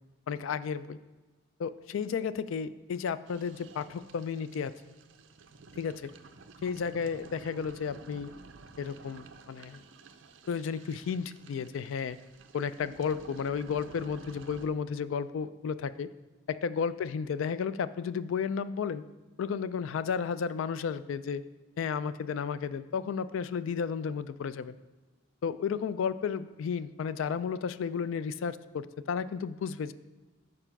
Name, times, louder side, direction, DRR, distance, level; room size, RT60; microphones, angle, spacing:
voice 1, 0.3-1.0 1.6-4.7 5.8-6.1 6.6-8.3 8.8-9.8 10.5-12.2 12.5-16.1 16.5-19.0 19.4-21.4 21.8-24.8 25.4-29.9, left 6 dB, 75° left, 15 dB, 0.3 m, -33 dB
sound 1, 3.3-14.7, right 4 dB, 70° right, 0.5 m, -52 dB
6.8 x 4.9 x 5.9 m, 1.2 s
head